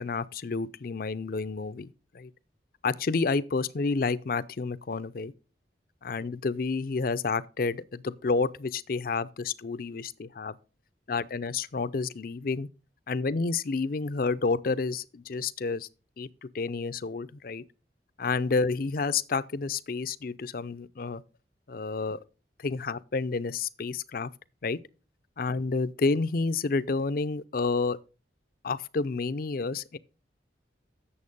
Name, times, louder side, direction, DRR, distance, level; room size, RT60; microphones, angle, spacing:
voice 1, 0.0-2.3 2.8-5.3 6.0-10.5 11.1-12.7 13.1-15.9 16.2-17.6 18.2-21.2 21.7-22.2 22.6-24.3 24.6-24.8 25.4-28.0 28.6-30.0, left 4 dB, 55° left, 0.5 m, -30 dB
8.6 x 7.0 x 5.3 m
head